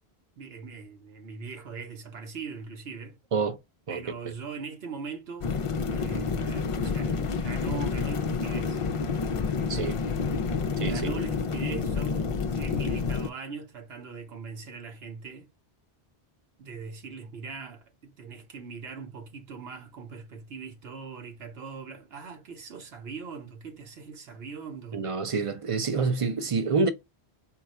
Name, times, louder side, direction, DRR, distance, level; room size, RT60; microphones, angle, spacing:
voice 1, 0.4-3.2 3.9-5.5 5.9-8.8 10.7-15.5 16.6-25.1, right 5 dB, 70° right, 1.2 m, -41 dB
sound 1, 5.4-13.3, left 5 dB, 60° left, 0.3 m, -29 dB
voice 2, 10.8-11.2 24.9-26.9, right 4 dB, 40° right, 0.5 m, -27 dB
4.3 x 2.3 x 4.2 m
omnidirectional pair, 1.1 m